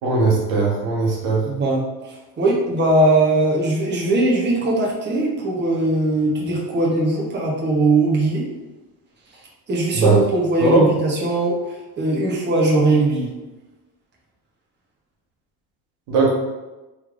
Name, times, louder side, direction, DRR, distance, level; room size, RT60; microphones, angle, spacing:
voice 1, 0.0-1.4 9.9-10.2 10.6-10.8 16.1-16.3, right 3 dB, 75° right, -3 dB, 1.3 m, -18 dB
voice 2, 1.4-8.5 9.7-13.3, right 2 dB, 20° right, -4 dB, 0.9 m, -20 dB
3.3 x 3.1 x 2.5 m, 1.1 s
supercardioid pair, 85°, 47 cm